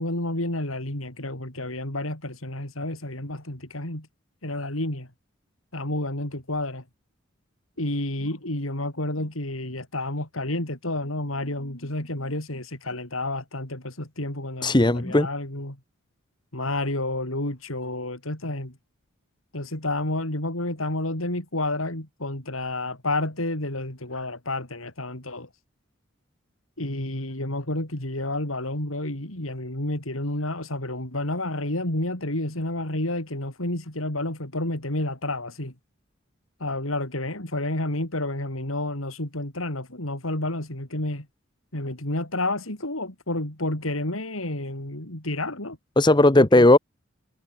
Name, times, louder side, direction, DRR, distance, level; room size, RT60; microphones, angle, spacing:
voice 1, 0.0-4.1 4.4-5.1 5.7-6.8 7.8-15.8 16.5-18.8 19.5-25.5 26.8-35.7 36.6-41.3 41.7-45.8 46.4-46.7, left 1 dB, 90° left, 5.5 m, -30 dB
voice 2, 14.6-15.3 46.0-46.8, left 2 dB, 20° left, 0.9 m, -16 dB
head